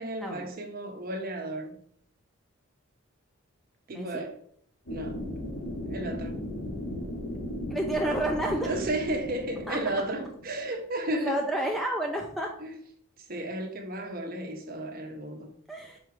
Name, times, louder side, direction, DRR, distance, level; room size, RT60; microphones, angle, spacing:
voice 1, 0.0-1.8 3.9-4.4 4.9-5.2 5.9-6.4 8.6-11.5 12.6-12.7 13.2-15.5, right 1 dB, 45° right, 1.1 m, -33 dB
voice 2, 3.9-4.3 7.7-8.7 9.7-9.8 11.1-12.5 15.7-16.0, right 1 dB, ahead, 0.5 m, -30 dB
sound 1, 4.9-10.8, left 1 dB, 75° left, 1.4 m, -36 dB
4.9 x 4.6 x 4.6 m
head